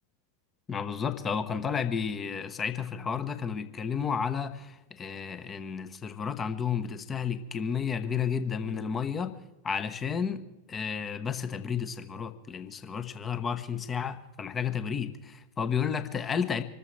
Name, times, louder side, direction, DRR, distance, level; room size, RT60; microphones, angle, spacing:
voice 1, 0.7-9.3 9.6-16.6, left 7 dB, 20° left, 11 dB, 1.0 m, -32 dB
26.0 x 13.5 x 3.3 m, 1.0 s
figure-of-eight pair, 90°, 0 cm